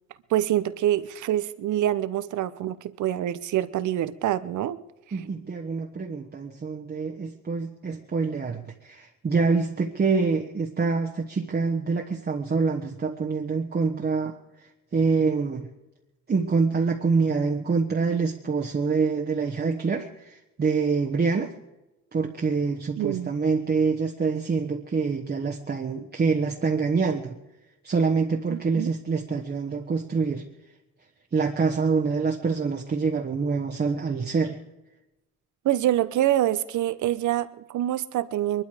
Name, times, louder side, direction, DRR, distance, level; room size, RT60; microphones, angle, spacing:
voice 1, 0.3-4.8 23.0-23.3 28.5-28.9 35.6-38.6, right 12 dB, 75° right, 15 dB, 0.9 m, -26 dB
voice 2, 5.1-14.4 14.9-15.7 16.3-21.5 22.1-27.4 27.8-30.5 31.3-34.6, right 4 dB, 35° right, 2 dB, 1.3 m, -26 dB
22.0 x 12.0 x 5.0 m, 0.97 s
cardioid pair, 90°, 30 cm